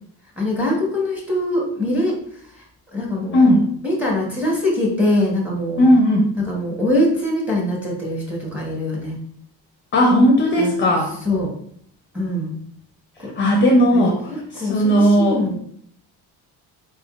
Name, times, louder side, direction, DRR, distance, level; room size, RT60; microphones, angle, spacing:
voice 1, 0.4-2.2 2.6-2.7 2.9-3.5 3.8-5.8 6.4-9.2 10.6-10.7 11.2-11.5 12.1-12.5 13.2-13.3 13.9-15.6, left 1 dB, 5° right, -2 dB, 1.0 m, -23 dB
voice 2, 3.3-3.6 5.8-6.3 9.9-11.1 13.3-15.4, equal, 30° left, 0 dB, 0.5 m, -16 dB
4.1 x 3.5 x 2.4 m, 0.65 s
cardioid pair, 165°, 38 cm